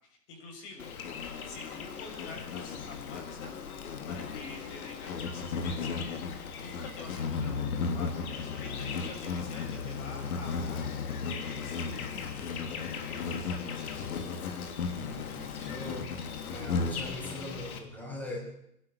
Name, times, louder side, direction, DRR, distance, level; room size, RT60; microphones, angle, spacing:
voice 1, 0.1-0.9 1.4-3.5 4.1-6.0 6.5-10.8 11.3-12.5 13.2-14.1, left 3 dB, 45° left, 1 dB, 7.8 m, -47 dB
Insect, 0.8-17.8, left 5 dB, 60° left, 3.5 m, -35 dB
voice 2, 15.0-16.1 16.5-18.4, left 1 dB, 5° left, -3 dB, 7.0 m, -41 dB
24.5 x 12.5 x 9.0 m, 0.76 s
hypercardioid pair, 130°, 49 cm